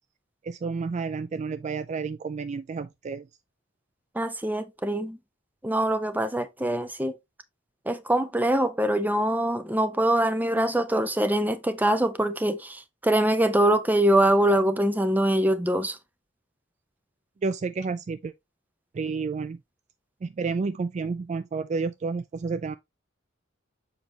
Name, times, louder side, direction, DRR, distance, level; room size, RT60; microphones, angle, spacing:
voice 1, 0.4-3.3 17.4-18.3 18.9-19.6 20.2-22.8, right 4 dB, 35° right, 0.3 m, -30 dB
voice 2, 4.2-5.2 5.6-7.1 7.9-16.0, right 1 dB, 10° right, 0.6 m, -23 dB
7.1 x 5.2 x 2.9 m
head